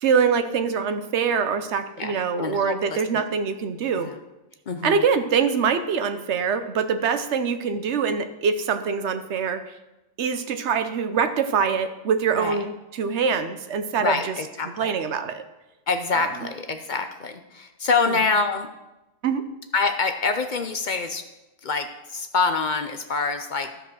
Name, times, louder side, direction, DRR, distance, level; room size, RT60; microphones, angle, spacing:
voice 1, 0.0-4.1 4.8-9.7 10.2-14.4 14.8-15.4 16.1-16.3 19.2-19.4, right 6 dB, 75° right, 10 dB, 1.0 m, -24 dB
voice 2, 2.0-3.2 4.0-4.2 4.7-5.1 12.3-12.6 14.0-14.9 15.9-18.7 19.7-21.2 21.6-23.7, left 4 dB, 50° left, 7 dB, 0.7 m, -26 dB
13.0 x 5.0 x 6.2 m, 1.0 s
omnidirectional pair, 1.2 m